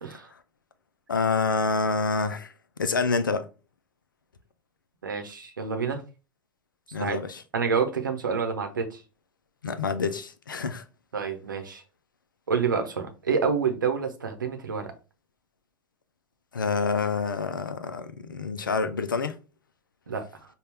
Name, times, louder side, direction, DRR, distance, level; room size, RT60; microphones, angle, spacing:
voice 1, 1.1-2.5 2.8-3.5 6.9-7.4 9.6-10.8 16.5-19.4, left 4 dB, 80° left, 0.4 m, -27 dB
voice 2, 5.0-6.0 7.0-7.2 7.5-9.0 11.1-11.8 12.5-14.9 20.1-20.3, right 6 dB, 80° right, 0.8 m, -28 dB
5.3 x 2.3 x 3.3 m
figure-of-eight pair, 70°, 11 cm